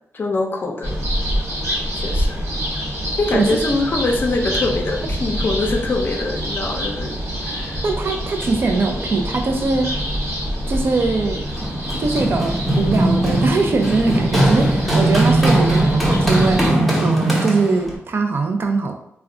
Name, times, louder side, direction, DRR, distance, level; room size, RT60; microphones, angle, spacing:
voice 1, 0.1-1.0 1.9-2.5 3.2-7.2 7.4-7.8, left 2 dB, 45° left, 2 dB, 0.5 m, -23 dB
sound 1, 0.8-16.7, equal, 70° right, 1.0 m, -26 dB
voice 2, 7.8-9.9 10.7-11.4 11.9-16.8 17.0-18.9, right 3 dB, 50° right, 5 dB, 0.4 m, -21 dB
Run, 11.6-17.9, right 1 dB, ahead, 0.7 m, -19 dB
2.3 x 2.2 x 3.6 m, 0.77 s
wide cardioid pair, 110°, 5 cm